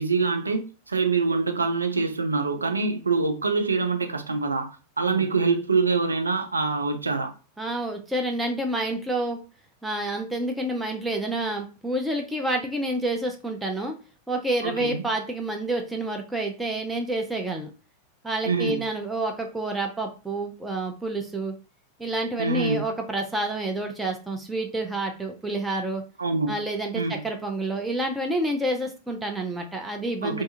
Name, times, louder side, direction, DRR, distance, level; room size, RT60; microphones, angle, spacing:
voice 1, 0.0-4.7 5.0-7.3 14.6-15.1 18.4-18.8 22.4-22.8 26.2-26.5 26.9-27.2 30.2-30.4, right 4 dB, 75° right, 0.4 m, -25 dB
voice 2, 7.6-9.4 9.8-14.0 14.3-17.7 18.2-21.5 22.0-26.0 26.5-30.4, right 2 dB, 10° right, 0.4 m, -28 dB
2.5 x 2.3 x 2.7 m
figure-of-eight pair, 90°, 0 cm